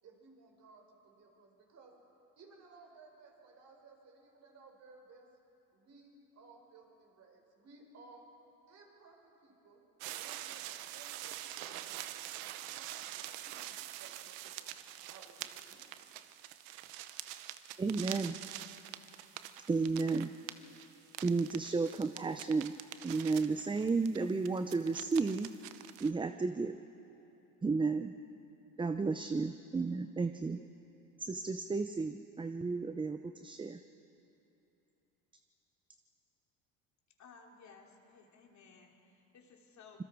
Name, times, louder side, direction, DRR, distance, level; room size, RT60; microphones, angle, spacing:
voice 1, 0.0-2.0 2.4-5.3 5.7-8.3 8.7-9.8 10.1-11.9 12.6-15.9, right 3 dB, 45° right, 1 dB, 4.7 m, -59 dB
sound 1, 10.0-26.1, right 13 dB, 85° right, 0.9 m, -45 dB
voice 2, 17.8-18.4 19.7-20.3 21.2-22.7 23.0-25.5 26.0-26.8 27.6-28.1 28.8-30.6 31.2-33.8, right 4 dB, 15° right, 8 dB, 0.6 m, -33 dB
voice 3, 37.2-40.0, left 5 dB, 45° left, 1 dB, 3.0 m, -58 dB
26.0 x 22.0 x 4.7 m, 2.9 s
supercardioid pair, 100°, 38 cm